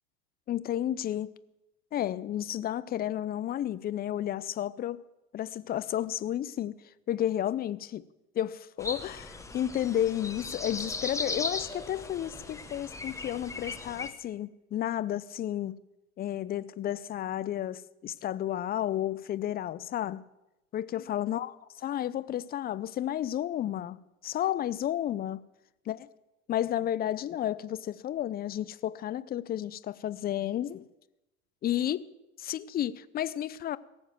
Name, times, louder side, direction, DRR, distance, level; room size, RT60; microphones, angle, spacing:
voice 1, 0.5-1.3 1.9-5.0 5.3-6.8 7.1-8.0 8.4-15.8 16.2-20.2 20.7-21.5 21.8-25.4 25.9-26.1 26.5-30.9 31.6-32.0 32.4-33.8, left 11 dB, 25° left, 0.5 m, -32 dB
sound 1, 8.8-14.1, left 3 dB, 5° left, 1.1 m, -38 dB
17.5 x 7.2 x 7.5 m
hypercardioid pair, 95°, 41 cm